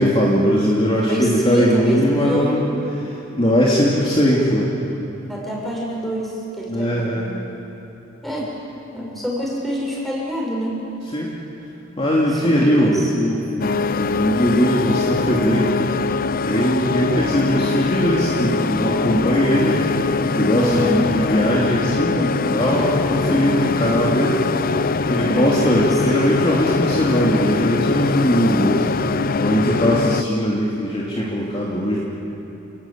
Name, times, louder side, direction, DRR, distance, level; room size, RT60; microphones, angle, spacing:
voice 1, 0.0-2.6 3.4-4.7 6.7-7.3 11.1-11.3 12.0-15.8 16.4-19.8 20.2-24.4 25.1-28.9 29.4-32.0, equal, 30° left, -5 dB, 2.9 m, -19 dB
voice 2, 0.9-2.6 5.3-7.2 8.2-8.5 8.9-10.8 12.3-13.1 20.5-21.1 22.1-22.6 25.1-25.9, equal, ahead, -4 dB, 6.8 m, -26 dB
sound 1, 13.6-30.2, left 4 dB, 45° left, 0.6 m, -22 dB
29.0 x 19.5 x 8.9 m, 2.9 s
head